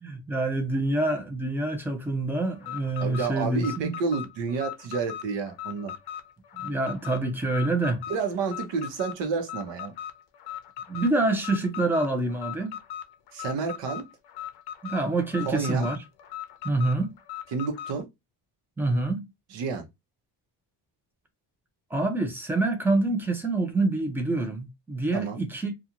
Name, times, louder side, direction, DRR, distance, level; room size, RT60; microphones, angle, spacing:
voice 1, 0.0-3.9 6.6-8.0 10.9-12.7 14.8-16.0 16.6-17.1 18.8-19.3 21.9-25.7, right 2 dB, 5° right, 0.4 m, -26 dB
Alarm, 2.5-18.0, left 11 dB, 60° left, 0.6 m, -39 dB
voice 2, 3.0-5.9 8.1-9.9 13.3-14.0 15.4-15.9 17.5-18.1 19.5-19.9 25.1-25.4, right 5 dB, 75° right, 0.9 m, -30 dB
2.5 x 2.4 x 2.7 m
cardioid pair, 155°, 43 cm